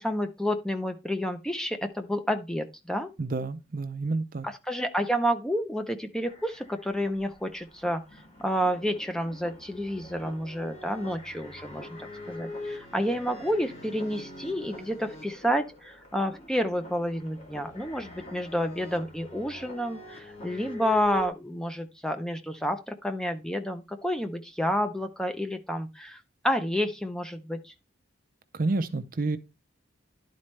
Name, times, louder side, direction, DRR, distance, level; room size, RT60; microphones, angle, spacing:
voice 1, 0.0-3.1 4.4-8.0 8.4-11.9 12.3-27.7, equal, 5° left, 0.5 m, -30 dB
voice 2, 3.2-4.5 28.5-29.4, right 3 dB, 45° right, 0.5 m, -29 dB
sound 1, 6.3-21.3, left 1 dB, 35° left, 1.9 m, -44 dB
11.0 x 4.2 x 3.2 m
head